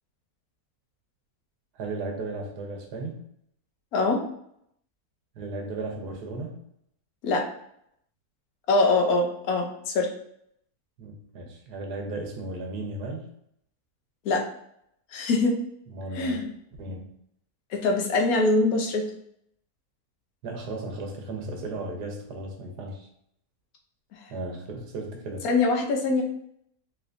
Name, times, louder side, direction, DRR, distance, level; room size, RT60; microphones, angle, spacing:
voice 1, 1.7-3.2 5.3-6.6 11.0-13.3 15.9-16.5 16.8-17.2 20.4-23.1 24.3-25.5, right 2 dB, 90° right, 2 dB, 1.4 m, -35 dB
voice 2, 3.9-4.3 7.2-7.5 8.7-10.1 14.2-14.4 15.1-15.6 16.2-16.4 17.7-19.1 25.4-26.2, left 3 dB, 70° left, 2 dB, 1.1 m, -23 dB
3.7 x 3.4 x 2.5 m, 0.73 s
omnidirectional pair, 1.6 m